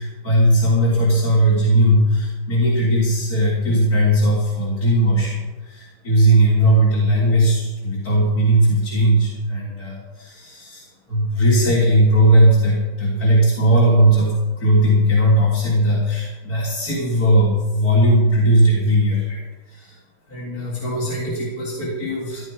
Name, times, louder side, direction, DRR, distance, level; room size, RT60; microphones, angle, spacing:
voice 1, 0.0-19.4 19.7-20.0 20.3-22.4, right 1 dB, 45° left, -8 dB, 4.0 m, -18 dB
16.5 x 12.0 x 5.0 m, 1.2 s
omnidirectional pair, 2.2 m